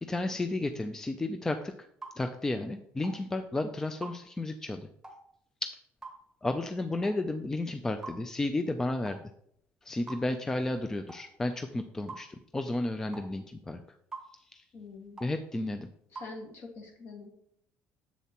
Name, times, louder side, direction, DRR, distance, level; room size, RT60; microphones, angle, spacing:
voice 1, 0.0-1.7 2.2-4.9 5.6-5.7 6.4-9.2 9.8-13.8 14.5-14.6 15.2-15.9, left 2 dB, 10° left, 7 dB, 0.3 m, -32 dB
sound 1, 2.0-2.2 3.0-3.2 4.0-4.2 5.0-5.2 6.0-6.2 7.0-7.2 8.0-8.2 9.1-9.2 10.1-10.3 11.1-11.2 12.1-12.3 13.1-13.3 14.1-14.3 15.2-15.4 16.2-16.3, right 3 dB, 15° right, 0.9 m, -44 dB
voice 2, 14.7-15.2 16.1-17.3, left 3 dB, 50° left, 1 dB, 1.7 m, -45 dB
7.4 x 6.9 x 2.9 m, 0.71 s
cardioid pair, 150°, 5 cm